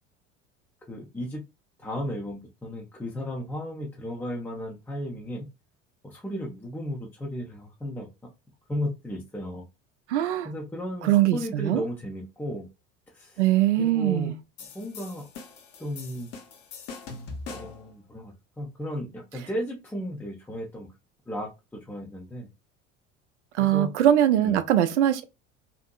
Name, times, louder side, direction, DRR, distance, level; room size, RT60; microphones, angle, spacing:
voice 1, 0.9-1.4 1.8-5.5 6.0-8.1 8.7-9.7 10.4-12.7 13.1-13.4 13.8-14.3 14.7-15.3 15.8-16.3 17.5-20.9 21.3-22.5 23.6-23.9 24.4-24.6, equal, 5° left, 0.5 m, -34 dB
voice 2, 10.1-10.5 11.0-11.8 13.4-14.4 23.5-25.2, right 12 dB, 65° right, 0.5 m, -22 dB
sound 1, 14.6-17.9, left 4 dB, 40° left, 0.7 m, -42 dB
2.6 x 2.6 x 2.2 m
figure-of-eight pair, 65°, 37 cm